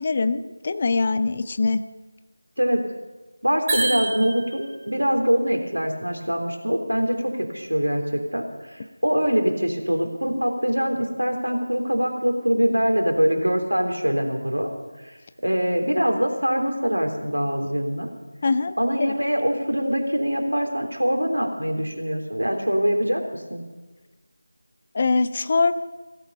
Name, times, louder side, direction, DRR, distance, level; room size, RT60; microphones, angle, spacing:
voice 1, 0.0-1.8 18.4-19.1 24.9-25.7, left 3 dB, 30° left, 12 dB, 0.5 m, -23 dB
voice 2, 3.4-14.7 15.0-15.2 15.4-18.1 18.8-23.6, equal, 85° right, 4 dB, 3.2 m, -23 dB
sound 1, 3.7-4.8, right 2 dB, 20° right, 3.2 m, -27 dB
16.5 x 14.0 x 5.4 m, 1.2 s
figure-of-eight pair, 165°, 0 cm